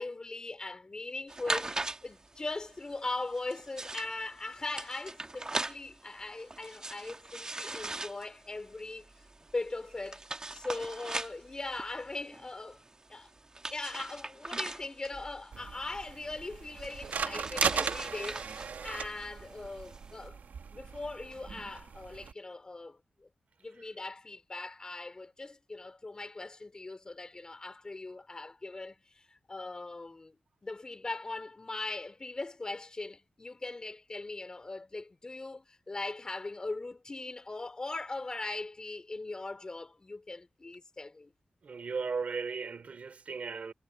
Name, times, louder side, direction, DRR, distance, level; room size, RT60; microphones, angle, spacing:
voice 1, 0.0-1.7 2.0-9.0 9.5-10.2 10.5-12.8 13.1-13.3 13.7-20.4 20.7-23.3 23.6-30.4 30.6-41.3, left 2 dB, 25° left, 4.4 m, -40 dB
sound 1, 1.3-20.2, right 2 dB, 25° right, 1.7 m, -41 dB
sound 2, 15.5-22.3, right 6 dB, 75° right, 1.4 m, -38 dB
voice 2, 41.6-43.7, right 5 dB, 55° right, 2.9 m, -36 dB
wide cardioid pair, 140°, 3 cm